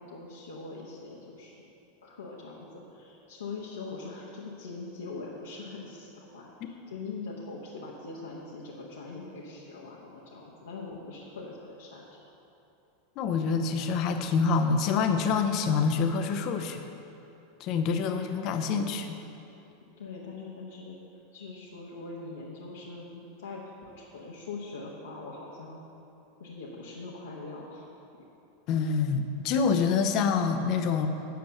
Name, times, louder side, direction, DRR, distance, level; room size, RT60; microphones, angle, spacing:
voice 1, 0.0-1.5 2.0-12.1 20.0-21.0 21.3-25.8 26.4-27.9, left 3 dB, 70° left, -6 dB, 1.3 m, -42 dB
voice 2, 13.2-16.8 17.6-19.2 28.7-31.1, left 5 dB, 40° left, 7 dB, 0.9 m, -26 dB
9.2 x 6.8 x 7.9 m, 2.9 s
figure-of-eight pair, 85°, 0 cm